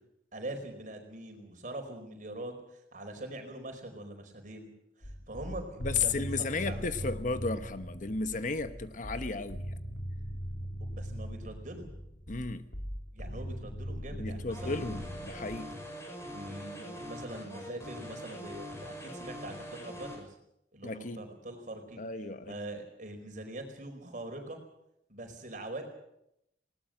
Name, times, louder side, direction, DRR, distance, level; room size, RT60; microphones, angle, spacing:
voice 1, 0.3-2.5 2.9-4.7 5.0-7.2 10.8-11.9 13.1-14.9 16.3-20.3 20.7-22.0 22.4-24.6 25.1-25.8, right 1 dB, 45° right, 4 dB, 4.8 m, -43 dB
sound 1, 5.0-15.6, equal, 90° left, 2.9 m, -40 dB
voice 2, 5.8-9.7 12.3-12.7 14.1-15.7 20.8-21.3 22.0-22.5, left 4 dB, 50° left, 11 dB, 1.0 m, -34 dB
sound 2, 14.5-20.2, equal, 15° left, 5.9 m, -43 dB
20.0 x 18.5 x 7.9 m, 0.80 s
head